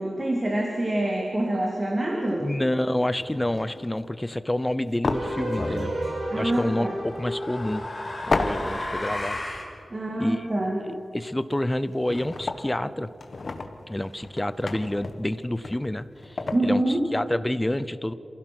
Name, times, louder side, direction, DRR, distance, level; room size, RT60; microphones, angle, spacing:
voice 1, 0.0-2.5 6.3-7.0 9.9-10.8 16.5-17.0, right 1 dB, 25° right, 0 dB, 2.2 m, -26 dB
sound 1, 1.3-1.5 2.3-2.5 3.0-4.2 5.0-6.2 6.5-6.6 8.3-9.2 9.4-9.5 11.2-11.3 11.5-12.8 13.2-16.8, left 3 dB, 50° left, 1.3 m, -32 dB
voice 2, 2.4-5.9 6.3-7.8 8.2-9.4 10.2-10.5 10.8-13.1 13.9-18.1, left 1 dB, 10° left, 14 dB, 0.6 m, -28 dB
sound 2, 5.1-8.3, right 1 dB, 65° right, 5.9 m, -33 dB
sound 3, 5.6-5.9 7.0-9.7, left 2 dB, 30° left, 3.4 m, -33 dB
27.5 x 16.0 x 6.1 m, 2.8 s
wide cardioid pair, 135°, 0 cm